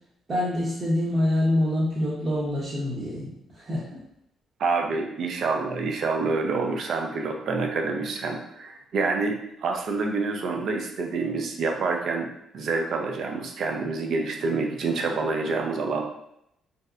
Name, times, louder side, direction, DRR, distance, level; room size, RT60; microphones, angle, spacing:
voice 1, 0.3-3.9, left 1 dB, 45° right, -8 dB, 0.8 m, -26 dB
voice 2, 4.6-12.3 12.5-16.0, right 4 dB, 65° right, 2 dB, 0.4 m, -27 dB
2.7 x 2.0 x 2.4 m, 0.78 s
cardioid pair, 90°, 0 cm